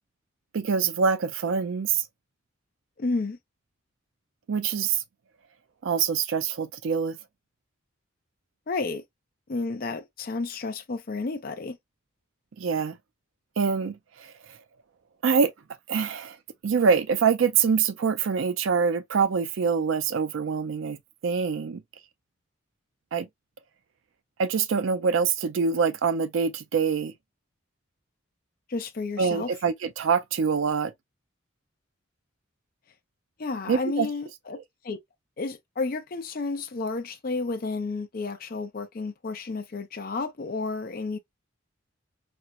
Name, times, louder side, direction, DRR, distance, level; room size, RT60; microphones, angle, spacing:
voice 1, 0.5-2.0 4.5-5.0 5.8-7.2 12.6-13.0 13.6-14.3 15.2-15.5 15.9-16.4 16.6-21.0 21.2-21.8 23.1-23.3 24.4-27.1 29.2-30.9 33.7-34.1 34.5-34.6, right 6 dB, 70° right, 0.4 m, -25 dB
voice 2, 3.0-3.4 8.7-9.0 9.5-11.8 28.7-29.5 33.4-35.0 35.4-41.2, left 3 dB, 45° left, 0.5 m, -31 dB
4.2 x 2.0 x 2.3 m
head